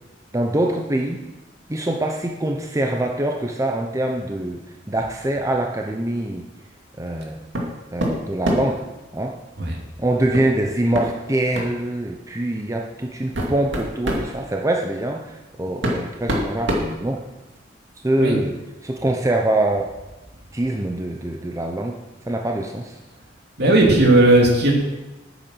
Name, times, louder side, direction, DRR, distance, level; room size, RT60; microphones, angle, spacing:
voice 1, 0.3-1.2 1.7-6.5 7.0-7.4 7.9-8.9 9.1-9.4 10.0-17.2 18.0-19.9 20.5-22.0 22.3-22.9, right 1 dB, 15° right, 1 dB, 0.7 m, -24 dB
sound 1, 7.5-7.7 8.0-8.8 10.3-10.5 10.9-11.1 11.5-11.7 12.6-12.7 13.1-14.3 15.3-15.4 15.8-17.6, equal, 85° right, 2.2 m, -25 dB
voice 2, 23.6-24.7, right 2 dB, 60° right, 0 dB, 2.6 m, -15 dB
9.0 x 8.2 x 6.3 m, 1.0 s
head